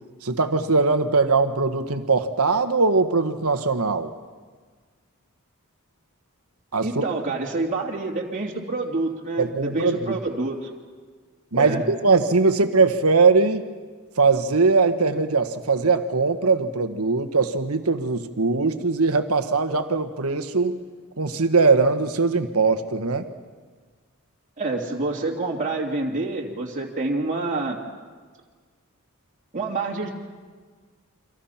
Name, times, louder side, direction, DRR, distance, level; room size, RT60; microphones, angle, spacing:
voice 1, 0.2-4.1 6.7-7.0 9.4-10.2 11.5-13.6 14.2-20.8 21.2-23.3, right 4 dB, 85° right, 8 dB, 1.5 m, -21 dB
voice 2, 6.8-10.7 11.5-11.9 24.6-27.8 29.5-30.1, right 3 dB, 35° right, -2 dB, 2.9 m, -27 dB
30.0 x 25.0 x 5.9 m, 1.5 s
head